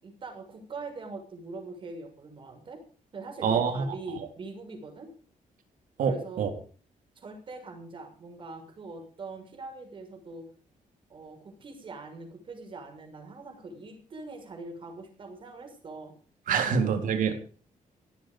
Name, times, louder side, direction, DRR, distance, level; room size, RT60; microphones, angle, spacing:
voice 1, 0.0-2.8 3.1-5.1 6.0-6.6 7.2-10.5 11.1-16.1 16.5-16.9, right 3 dB, 40° right, 4 dB, 6.5 m, -42 dB
voice 2, 3.4-3.9 6.0-6.5 16.5-17.3, right 6 dB, 80° right, 6 dB, 3.7 m, -26 dB
16.5 x 14.0 x 5.0 m, 0.41 s
wide cardioid pair, 165°, 14 cm